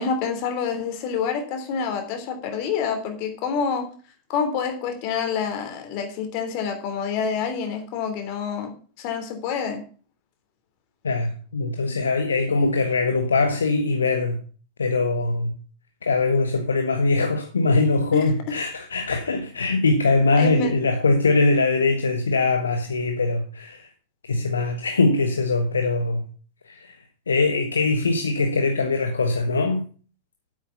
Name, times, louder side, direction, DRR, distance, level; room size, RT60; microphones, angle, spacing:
voice 1, 0.0-3.9 4.3-8.7 9.0-9.8 18.1-18.3 20.4-20.7, left 6 dB, 45° left, 3.2 m, -27 dB
voice 2, 11.0-14.4 14.8-15.5 16.0-23.9 24.3-26.2 26.7-26.9 27.3-29.8, left 3 dB, 70° left, 1.2 m, -22 dB
9.7 x 8.3 x 5.5 m
figure-of-eight pair, 90°, 0 cm